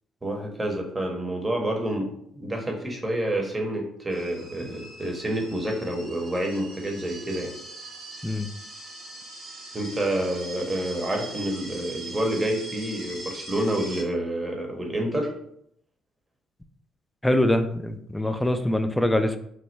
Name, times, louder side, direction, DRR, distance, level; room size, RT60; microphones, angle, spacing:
voice 1, 0.2-7.5 9.7-15.3, right 1 dB, 25° right, 1 dB, 0.9 m, -28 dB
sound 1, 4.1-14.0, right 2 dB, 65° right, 1.0 m, -41 dB
voice 2, 17.2-19.4, left 1 dB, 10° left, 8 dB, 0.4 m, -23 dB
3.1 x 2.1 x 3.2 m, 0.71 s
hypercardioid pair, 50°, 0 cm